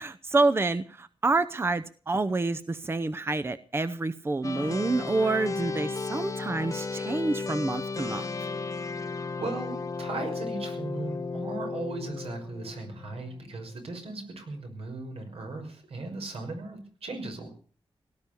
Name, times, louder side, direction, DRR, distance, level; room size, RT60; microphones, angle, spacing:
voice 1, 0.0-8.3, right 3 dB, 25° right, 13 dB, 0.7 m, -28 dB
sound 1, 4.4-13.7, left 4 dB, 35° left, 1.3 m, -34 dB
voice 2, 8.9-17.5, right 3 dB, 85° right, 4 dB, 6.0 m, -37 dB
18.0 x 11.0 x 6.8 m, 0.43 s
wide cardioid pair, 145°, 10 cm